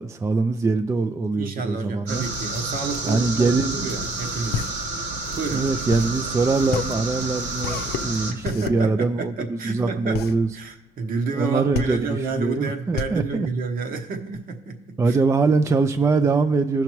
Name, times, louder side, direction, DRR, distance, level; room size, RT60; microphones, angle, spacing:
voice 1, 0.0-2.2 3.1-3.9 5.5-10.5 11.3-13.5 15.0-16.8, right 4 dB, 20° right, 8 dB, 0.3 m, -23 dB
voice 2, 1.4-4.7 5.4-5.7 8.3-10.2 10.5-15.2, right 4 dB, 55° right, 5 dB, 1.1 m, -30 dB
sound 1, 2.1-8.3, right 2 dB, 80° right, 1.5 m, -30 dB
sound 2, 4.5-14.4, left 7 dB, 70° left, 0.6 m, -31 dB
15.5 x 5.8 x 3.1 m, 0.95 s
cardioid pair, 110°, 17 cm